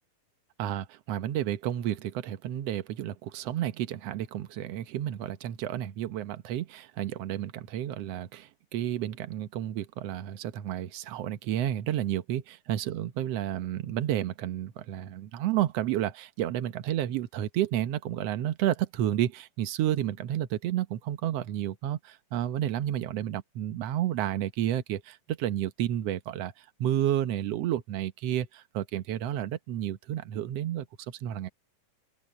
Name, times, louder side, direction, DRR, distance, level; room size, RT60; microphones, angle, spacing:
voice 1, 0.6-31.5, right 12 dB, 75° right, 1.5 m, -31 dB
open air
omnidirectional pair, 4.1 m